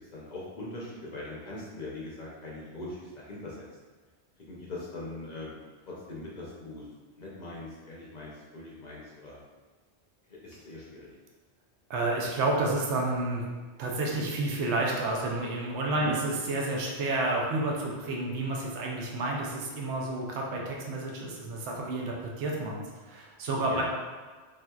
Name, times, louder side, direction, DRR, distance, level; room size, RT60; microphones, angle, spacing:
voice 1, 0.1-3.7 4.4-6.9 7.1-9.4 10.3-11.1 15.9-16.1 23.7-23.8, left 2 dB, 50° left, -5 dB, 0.5 m, -41 dB
voice 2, 11.9-13.4 13.8-22.8 23.1-23.8, right 2 dB, 80° right, -2 dB, 0.9 m, -30 dB
3.4 x 2.7 x 2.3 m, 1.4 s
omnidirectional pair, 1.2 m